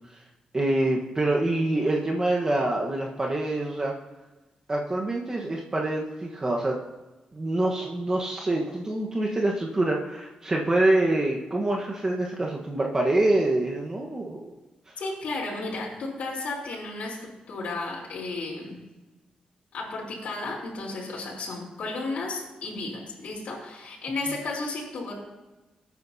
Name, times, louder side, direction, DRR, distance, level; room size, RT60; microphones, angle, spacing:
voice 1, 0.5-3.9 4.7-6.8 7.3-14.5, right 2 dB, 25° right, -1 dB, 1.2 m, -25 dB
voice 2, 15.0-18.8 19.7-25.2, left 3 dB, 75° left, -4 dB, 3.6 m, -33 dB
21.0 x 9.3 x 2.7 m, 1.1 s
cardioid pair, 110°, 2 cm